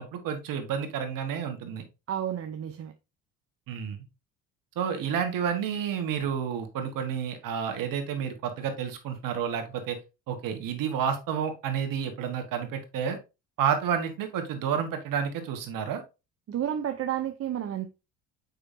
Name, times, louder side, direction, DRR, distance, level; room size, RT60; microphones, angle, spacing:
voice 1, 0.0-1.8 3.7-4.0 4.8-10.0 10.3-13.2 13.6-16.0, right 7 dB, 60° right, 1.8 m, -30 dB
voice 2, 2.1-2.9 16.5-17.9, right 10 dB, 40° right, 0.7 m, -31 dB
6.7 x 5.3 x 2.7 m
supercardioid pair, 80°, 37 cm